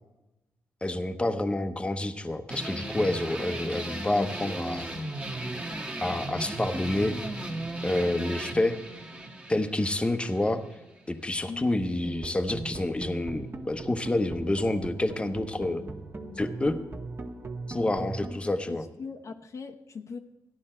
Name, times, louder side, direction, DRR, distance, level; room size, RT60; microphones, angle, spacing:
voice 1, 0.8-4.9 6.0-7.2 7.8-8.8 9.5-10.6 11.1-15.8 16.4-16.8 17.7-18.8, left 1 dB, 15° left, 9 dB, 0.8 m, -28 dB
sound 1, 2.5-11.5, right 1 dB, 15° right, 1.3 m, -36 dB
voice 2, 11.5-11.8 17.8-18.1 18.4-20.2, left 5 dB, 50° left, 4 dB, 0.7 m, -41 dB
sound 2, 12.0-18.4, right 2 dB, 35° right, 1.3 m, -39 dB
14.0 x 10.5 x 4.4 m, 0.98 s
cardioid pair, 105°, 7 cm